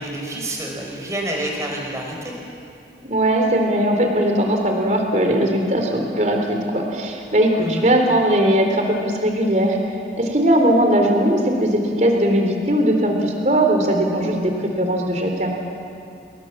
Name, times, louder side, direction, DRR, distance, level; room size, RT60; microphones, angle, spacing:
voice 1, 0.0-2.3 7.6-7.9, right 1 dB, 15° right, 0 dB, 5.0 m, -28 dB
voice 2, 3.0-9.8 10.2-15.5, right 1 dB, 40° right, 2 dB, 3.8 m, -19 dB
29.5 x 21.5 x 7.4 m, 2.6 s
head